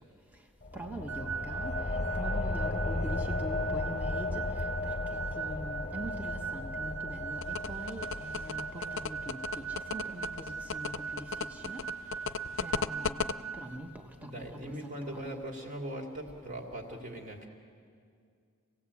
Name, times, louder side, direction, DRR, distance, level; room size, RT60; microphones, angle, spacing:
sound 1, 0.6-11.8, left 2 dB, 35° left, 0.9 m, -36 dB
voice 1, 0.7-11.8 12.6-15.4, right 1 dB, 10° right, 3 dB, 1.2 m, -43 dB
sound 2, 1.1-13.8, right 6 dB, 75° right, 0.6 m, -40 dB
sound 3, 7.4-13.3, left 5 dB, 65° left, 0.6 m, -34 dB
voice 2, 14.1-17.5, right 1 dB, 35° right, 1 dB, 2.6 m, -40 dB
28.0 x 17.5 x 8.5 m, 2.3 s
head